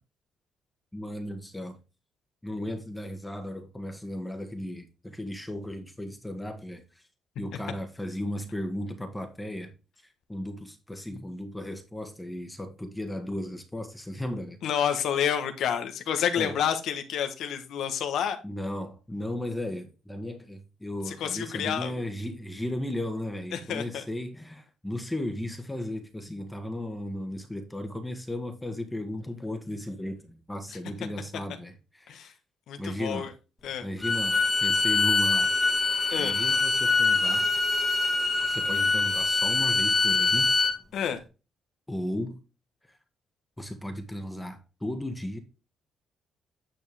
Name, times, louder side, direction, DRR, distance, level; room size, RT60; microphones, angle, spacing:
voice 1, 0.9-1.8 2.4-7.0 7.4-9.7 10.3-14.6 16.4-16.6 18.4-32.3 32.8-33.3 33.8-35.9 36.2-37.5 38.4-40.5 41.9-42.4 43.6-45.4, left 1 dB, 10° left, 1.5 m, -35 dB
voice 2, 14.6-18.4 21.1-21.9 23.5-24.0 32.1-32.3 32.7-33.3 33.6-33.9 36.1-36.4 40.9-41.2, left 8 dB, 75° left, 1.2 m, -29 dB
Bowed string instrument, 34.0-40.8, left 3 dB, 25° left, 1.7 m, -24 dB
9.6 x 4.5 x 3.4 m
cardioid pair, 90°, 0 cm